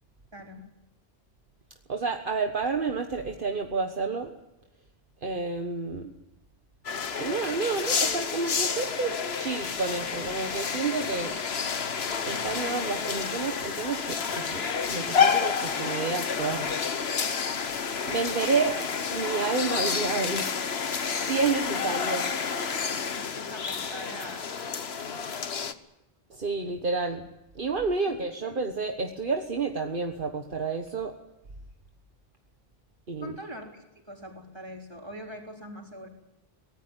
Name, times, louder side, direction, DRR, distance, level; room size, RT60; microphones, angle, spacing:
voice 1, 0.3-0.7 18.7-18.8 21.5-22.2 23.2-25.5 28.1-28.5 33.2-36.1, equal, 25° right, 1 dB, 4.1 m, -43 dB
voice 2, 1.9-4.3 5.2-6.1 7.2-11.4 12.2-14.6 14.9-16.7 18.0-18.7 19.1-20.6 20.9-22.3 26.3-27.3 27.5-31.1 33.1-33.4, right 4 dB, 55° right, 4 dB, 1.6 m, -30 dB
sound 1, 6.8-25.7, left 6 dB, 75° left, 1.4 m, -29 dB
23.5 x 18.0 x 9.1 m, 0.94 s
omnidirectional pair, 1.0 m